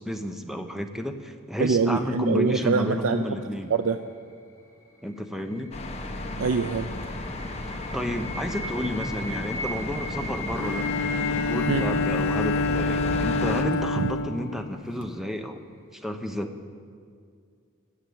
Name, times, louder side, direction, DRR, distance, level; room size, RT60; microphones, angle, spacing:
voice 1, 0.0-3.8 5.0-5.7 7.9-10.9 11.3-15.6 15.9-16.5, left 1 dB, ahead, 6 dB, 0.7 m, -31 dB
voice 2, 1.6-3.2 3.7-4.0 6.4-6.9 11.7-11.8 14.0-14.1, right 5 dB, 70° right, 8 dB, 0.5 m, -24 dB
sound 1, 5.1-14.1, left 2 dB, 15° left, 2.5 m, -38 dB
sound 2, 5.7-13.6, left 2 dB, 30° left, 1.0 m, -33 dB
Bowed string instrument, 10.5-15.2, left 3 dB, 60° left, 0.4 m, -27 dB
13.0 x 7.8 x 8.5 m, 2.2 s
head